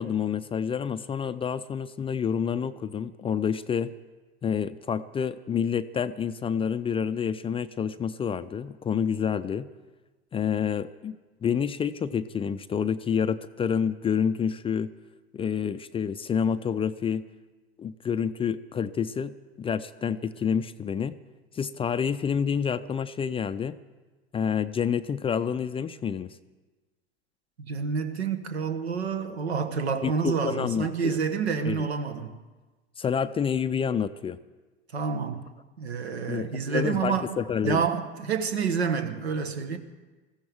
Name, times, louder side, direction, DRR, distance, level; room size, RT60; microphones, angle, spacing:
voice 1, 0.0-3.9 4.4-9.7 10.3-11.2 11.4-14.9 15.3-17.2 17.8-21.2 21.5-23.8 24.3-26.3 30.0-31.2 31.7-31.9 33.0-34.4 36.3-37.8, left 7 dB, 20° left, 12 dB, 0.4 m, -28 dB
voice 2, 27.6-32.4 34.9-37.4 37.6-39.8, right 6 dB, 85° right, 9 dB, 1.3 m, -28 dB
21.0 x 14.5 x 3.6 m, 1.3 s
hypercardioid pair, 85°, 32 cm